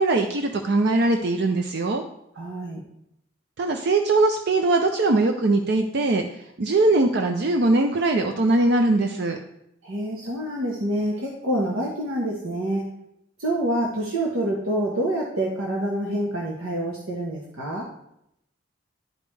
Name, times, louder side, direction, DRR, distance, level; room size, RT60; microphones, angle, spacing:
voice 1, 0.0-2.0 3.6-6.2 6.6-9.4, right 2 dB, 55° right, 5 dB, 0.5 m, -21 dB
voice 2, 2.3-2.8 9.8-12.9 13.4-17.9, right 1 dB, 80° right, -2 dB, 1.2 m, -27 dB
11.0 x 5.2 x 3.3 m, 0.79 s
head